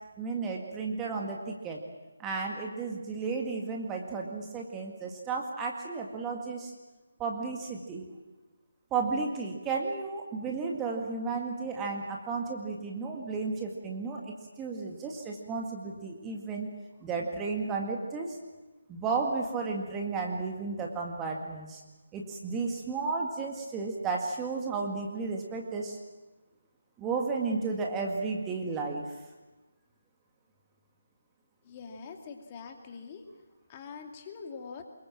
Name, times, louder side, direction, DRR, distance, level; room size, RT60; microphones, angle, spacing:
voice 1, 0.2-1.8 2.2-6.7 7.2-8.1 8.9-16.7 17.0-18.3 18.9-21.8 22.1-26.0 27.0-29.1, right 4 dB, 10° right, 0 dB, 2.0 m, -33 dB
voice 2, 31.6-33.2 33.7-34.8, left 5 dB, 25° left, 3 dB, 2.4 m, -44 dB
24.5 x 22.0 x 7.5 m, 1.2 s
figure-of-eight pair, 155°, 0 cm